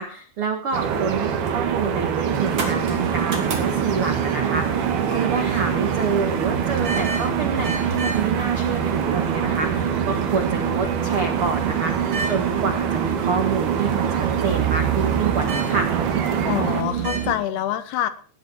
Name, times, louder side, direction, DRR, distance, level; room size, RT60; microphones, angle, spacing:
voice 1, 0.0-15.9, right 5 dB, 90° right, 5 dB, 1.2 m, -27 dB
sound 1, 0.7-16.8, right 7 dB, 70° right, 3.6 m, -26 dB
sound 2, 2.1-17.3, right 7 dB, 35° right, 3.0 m, -27 dB
voice 2, 5.1-5.5 16.4-18.1, left 11 dB, 75° left, 11 dB, 3.0 m, -26 dB
18.0 x 10.0 x 4.5 m, 0.41 s
omnidirectional pair, 4.8 m